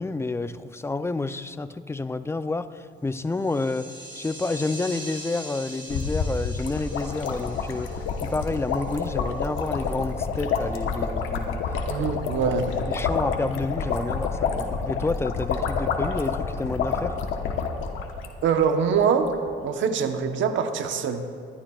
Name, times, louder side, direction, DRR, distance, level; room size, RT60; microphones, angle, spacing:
voice 1, 0.0-3.9 4.2-7.9 8.2-11.6 12.0-12.1 12.9-17.2, left 3 dB, 15° left, 11 dB, 0.5 m, -29 dB
sound 1, 3.2-9.3, right 1 dB, 25° right, 2.6 m, -43 dB
sound 2, 5.9-18.7 18.9-19.0 19.2-19.5, left 5 dB, 85° left, 1.1 m, -28 dB
voice 2, 11.9-12.7 18.4-21.2, right 6 dB, 75° right, 6 dB, 1.0 m, -24 dB
25.0 x 11.5 x 2.4 m, 2.3 s
cardioid pair, 90°, 20 cm